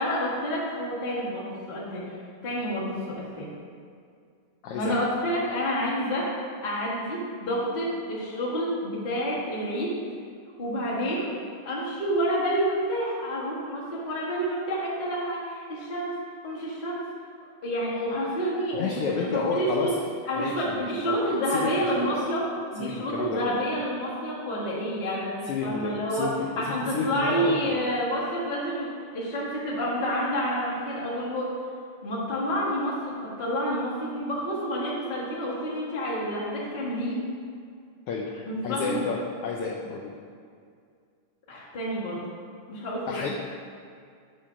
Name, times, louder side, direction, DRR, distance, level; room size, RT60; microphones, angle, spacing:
voice 1, 0.0-3.5 4.7-6.3 6.6-9.9 10.6-11.4 11.6-16.2 16.4-17.0 17.6-19.9 20.3-22.4 22.7-26.3 26.6-31.5 32.0-37.2 38.4-39.0 41.5-42.2 42.7-43.2, equal, 25° left, -8 dB, 1.0 m, -29 dB
voice 2, 4.6-5.0 18.7-19.9 20.4-21.2 21.5-22.1 22.8-23.6 25.5-27.8 38.1-39.2 39.4-40.1 43.1-43.3, left 5 dB, 90° left, -1 dB, 1.3 m, -31 dB
8.5 x 3.9 x 6.1 m, 2.2 s
omnidirectional pair, 3.4 m